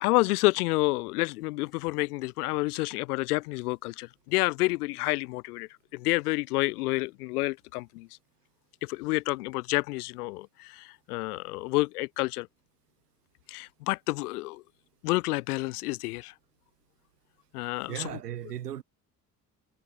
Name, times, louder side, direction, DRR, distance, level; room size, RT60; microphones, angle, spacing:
voice 1, 0.0-8.1 8.8-12.5 13.5-14.6 15.0-16.3 17.5-18.2, left 22 dB, 70° left, 0.7 m, -29 dB
voice 2, 17.9-18.8, right 11 dB, 80° right, 1.6 m, -36 dB
figure-of-eight pair, 50°, 47 cm